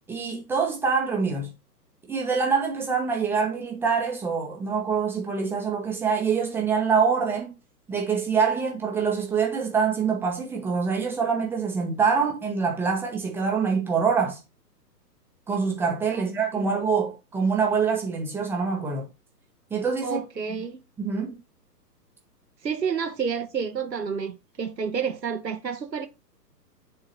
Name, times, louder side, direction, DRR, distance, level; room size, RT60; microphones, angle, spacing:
voice 1, 0.1-1.5 2.1-7.5 7.9-14.4 15.5-19.1 19.7-20.2 21.0-21.4, right 5 dB, 5° right, 0.8 m, -25 dB
voice 2, 16.5-16.8 20.0-20.8 22.6-26.1, right 6 dB, 80° right, 1.0 m, -30 dB
9.6 x 3.8 x 2.9 m
figure-of-eight pair, 120°, 49 cm